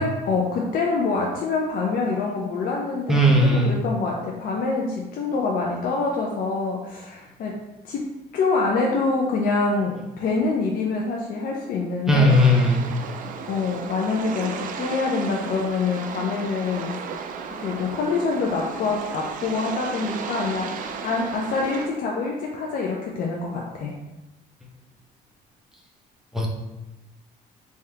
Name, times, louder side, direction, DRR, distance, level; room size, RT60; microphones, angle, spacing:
voice 1, 0.0-7.6 7.8-8.1 8.3-12.4 13.5-17.0 17.6-24.0, left 4 dB, 60° left, -1 dB, 0.5 m, -25 dB
voice 2, 3.1-3.8 12.1-12.8 26.3-26.5, equal, 5° right, -2 dB, 0.8 m, -17 dB
sound 1, 12.3-21.9, right 6 dB, 55° right, 0.4 m, -34 dB
3.5 x 2.8 x 3.4 m, 1.0 s
cardioid pair, 110°, 17 cm